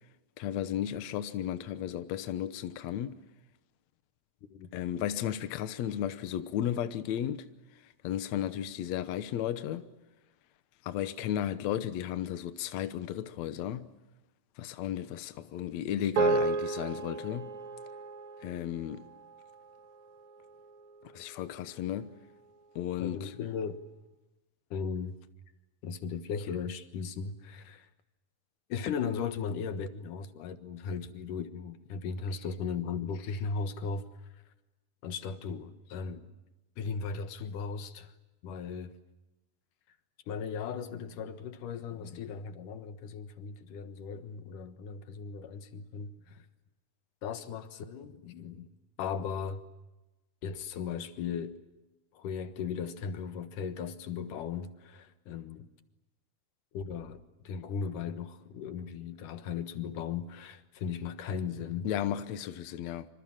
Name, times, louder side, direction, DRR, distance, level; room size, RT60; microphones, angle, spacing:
voice 1, 0.4-3.2 4.7-7.5 7.8-9.9 10.8-13.9 14.6-17.6 18.4-19.0 21.1-22.1 22.8-23.3 61.8-63.1, left 10 dB, 65° left, 2.2 m, -34 dB
sound 1, 16.2-20.7, right 4 dB, 65° right, 3.1 m, -33 dB
voice 2, 23.0-23.8 24.7-25.2 25.8-27.9 28.7-34.1 35.0-36.3 36.8-38.1 38.4-38.9 40.3-46.5 47.2-48.7 49.0-49.6 50.4-51.6 52.1-55.7 56.7-61.9, left 6 dB, 90° left, 3.0 m, -37 dB
26.5 x 26.0 x 7.5 m
omnidirectional pair, 3.6 m